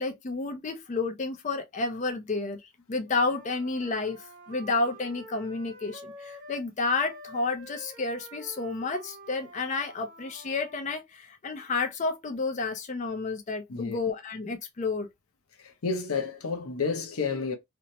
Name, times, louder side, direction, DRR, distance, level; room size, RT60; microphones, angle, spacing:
voice 1, 0.0-2.6 2.9-15.1, left 3 dB, 35° left, 0.4 m, -31 dB
Wind instrument woodwind instrument, 3.0-6.7 6.9-10.8, right 1 dB, 40° right, 1.2 m, -48 dB
voice 2, 15.8-17.5, left 5 dB, 90° left, 0.7 m, -30 dB
2.8 x 2.0 x 2.7 m
head